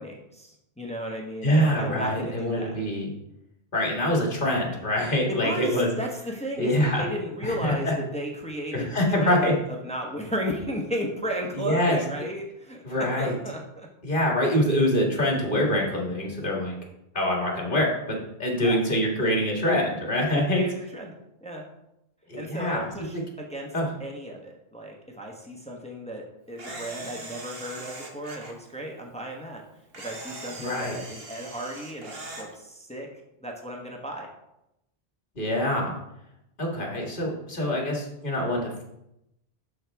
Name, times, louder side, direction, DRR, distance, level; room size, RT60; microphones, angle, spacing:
voice 1, 0.0-2.8 5.3-8.9 9.2-13.9 18.6-18.8 20.3-21.1 21.4-21.7 22.3-23.7 24.0-29.6 30.0-33.1 33.4-34.3, equal, 5° left, 0 dB, 1.0 m, -34 dB
voice 2, 1.4-3.1 3.7-5.9 6.6-7.1 7.4-7.9 8.7-9.6 11.5-12.0 12.8-13.3 14.0-16.8 17.1-20.6 22.3-22.8 23.1-23.2 23.7-23.9 30.6-31.0 35.4-36.0 36.6-38.8, left 1 dB, 55° left, -1 dB, 1.9 m, -25 dB
Camera, 26.6-28.5 29.9-32.5, right 2 dB, 65° right, 1.4 m, -40 dB
11.5 x 4.6 x 3.5 m, 0.84 s
omnidirectional pair, 1.1 m